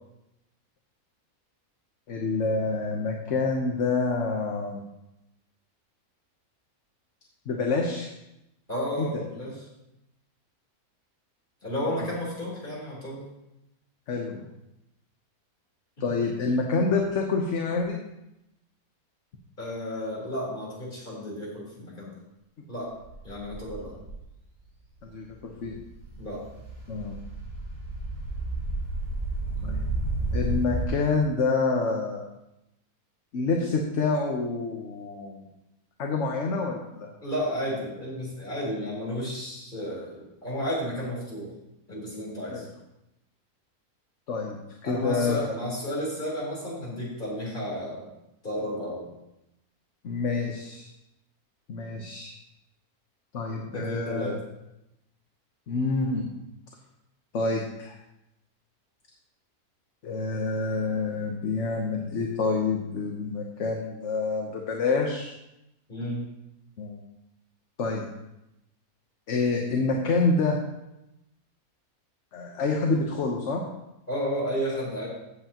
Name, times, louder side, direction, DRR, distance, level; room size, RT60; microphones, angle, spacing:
voice 1, 2.1-4.8 7.5-8.1 9.0-9.1 14.1-14.5 16.0-18.0 25.1-25.8 26.9-27.2 29.6-29.9 30.3-32.2 33.3-35.4 36.0-37.1 42.5-42.7 44.3-44.6 44.8-45.4 50.0-50.9 51.7-52.3 53.3-54.3 55.7-56.3 57.3-58.0 60.0-65.3 66.8-67.0 67.8-68.1 69.3-70.6 72.3-73.6, left 3 dB, 55° left, 1 dB, 1.2 m, -27 dB
voice 2, 8.7-9.6 11.6-13.3 16.0-16.3 19.6-22.2 22.7-22.9 23.2-24.0 26.1-26.4 37.2-41.5 41.9-42.6 44.8-48.1 48.4-49.1 53.7-54.4 65.9-66.2 74.1-75.1, equal, 35° left, -6 dB, 4.2 m, -32 dB
sound 1, 23.0-24.2 24.9-25.0 25.3-30.9, right 2 dB, 60° right, 3.5 m, -32 dB
14.5 x 7.9 x 2.9 m, 0.89 s
omnidirectional pair, 1.5 m